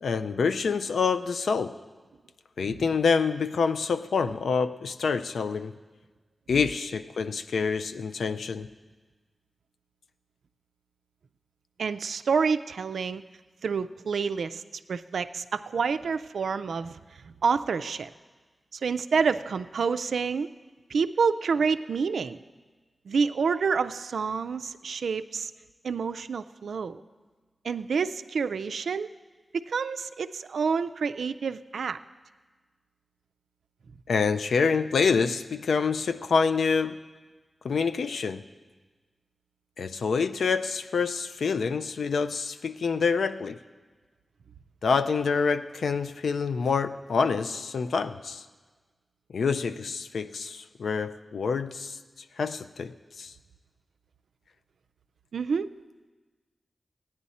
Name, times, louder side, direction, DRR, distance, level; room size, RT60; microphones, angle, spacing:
voice 1, 0.0-1.8 2.6-5.7 6.5-8.7 34.1-37.0 37.6-38.4 39.8-43.6 44.8-48.4 49.3-52.0 52.4-53.3, left 5 dB, 90° left, 10 dB, 0.4 m, -27 dB
voice 2, 11.8-13.2 13.6-14.6 14.9-17.0 17.2-18.1 18.7-20.5 20.9-22.4 23.1-25.5 25.8-27.0 27.6-29.1 29.5-32.0 55.3-55.7, right 5 dB, 90° right, 11 dB, 0.3 m, -28 dB
15.0 x 10.0 x 4.2 m, 1.4 s
cardioid pair, 50°, 0 cm